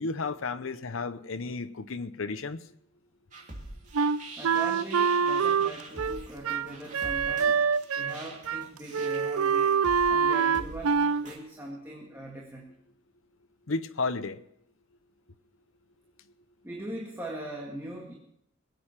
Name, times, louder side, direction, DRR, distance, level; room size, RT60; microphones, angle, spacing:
voice 1, 0.0-2.6 13.7-14.4, left 3 dB, 70° left, 11 dB, 0.8 m, -33 dB
sound 1, 3.3-11.4, right 2 dB, 35° right, 2.7 m, -45 dB
Wind instrument woodwind instrument, 3.9-8.2 8.5-8.7 8.9-11.2, right 6 dB, 90° right, 0.5 m, -25 dB
voice 2, 4.4-7.7 8.0-9.8 10.1-12.7 16.6-18.1, right 1 dB, 10° right, -2 dB, 1.9 m, -41 dB
21.5 x 8.8 x 5.8 m, 0.73 s
head